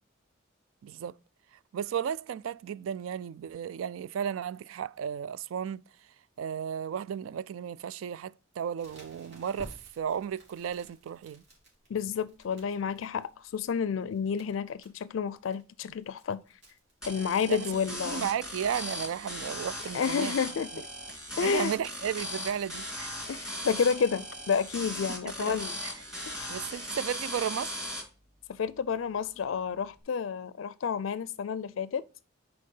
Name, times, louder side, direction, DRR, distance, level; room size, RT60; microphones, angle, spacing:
voice 1, 0.8-1.1 1.7-5.8 6.4-11.4 17.5-17.7 18.0-20.3 20.7-20.8 21.4-23.2 25.1-25.6 25.8-25.9 26.5-27.8, right 8 dB, 85° right, 0.3 m, -34 dB
Crackle, 8.8-17.9, equal, 60° right, 3.5 m, -56 dB
voice 2, 11.9-16.4 17.1-18.3 19.9-20.7 21.4-21.7 23.3-25.8 26.3-26.5 28.5-32.0, left 6 dB, 75° left, 0.4 m, -30 dB
sound 1, 17.0-28.0, equal, 5° right, 2.9 m, -38 dB
6.4 x 4.7 x 5.4 m
head